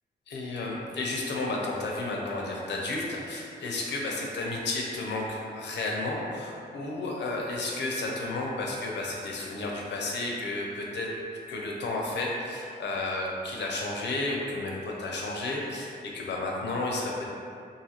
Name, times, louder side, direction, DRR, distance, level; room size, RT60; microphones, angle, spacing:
voice 1, 0.3-11.2 11.5-17.3, left 2 dB, 75° left, -1 dB, 0.5 m, -32 dB
2.7 x 2.4 x 2.8 m, 2.5 s
cardioid pair, 60°, 18 cm